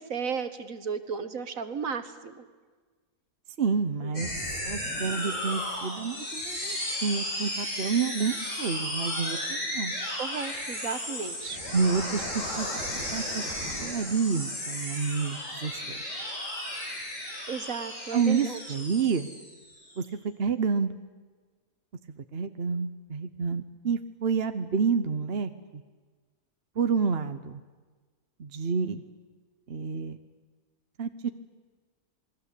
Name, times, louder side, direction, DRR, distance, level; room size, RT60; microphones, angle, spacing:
voice 1, 0.0-2.5 4.0-4.3 10.2-11.6 17.5-18.6, right 6 dB, 60° right, 10 dB, 1.9 m, -34 dB
voice 2, 3.6-4.3 4.6-9.9 11.7-12.3 12.6-12.7 13.1-13.5 13.8-16.0 18.1-19.3 20.0-20.9 22.3-25.5 26.8-27.6 28.4-29.0 29.7-30.2 31.0-31.3, right 5 dB, 45° right, 9 dB, 1.1 m, -29 dB
sound 1, 4.1-20.0, left 1 dB, 55° left, 7.5 m, -34 dB
28.0 x 21.5 x 8.4 m, 1.4 s
omnidirectional pair, 1.6 m